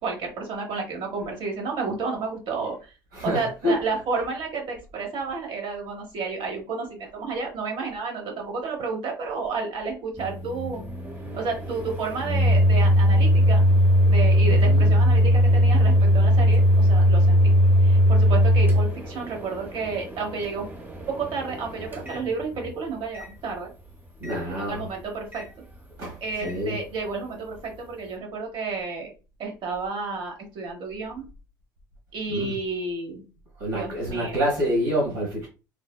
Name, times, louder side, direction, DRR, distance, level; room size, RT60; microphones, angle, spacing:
voice 1, 0.0-2.9 3.2-10.8 11.3-13.6 14.0-17.5 17.8-20.7 21.1-23.7 24.5-25.5 26.2-29.1 29.4-31.2 32.1-33.2 33.7-34.4, right 4 dB, 55° right, 1.1 m, -31 dB
voice 2, 3.1-3.7 14.4-14.9 24.2-24.9 26.0-26.8 32.3-32.5 33.6-35.5, equal, 75° right, 1.1 m, -27 dB
Microwave oven, 10.2-22.7 23.1-23.3 24.2-24.4 25.3-25.5 26.4-26.6, equal, 20° right, 0.7 m, -20 dB
3.2 x 2.0 x 2.3 m
hypercardioid pair, 65°, 11 cm